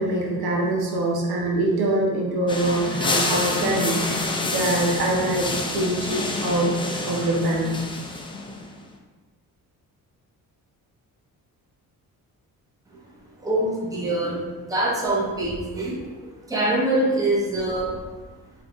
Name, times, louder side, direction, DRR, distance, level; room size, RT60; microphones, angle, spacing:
voice 1, 0.0-6.7 7.0-7.8, right 1 dB, 85° right, -2 dB, 0.9 m, -24 dB
sound 1, 2.5-8.7, left 2 dB, 15° left, 0.3 m, -28 dB
voice 2, 13.4-18.0, right 1 dB, 10° right, -4 dB, 0.7 m, -24 dB
3.8 x 3.4 x 2.4 m, 1.2 s
cardioid pair, 120°, 36 cm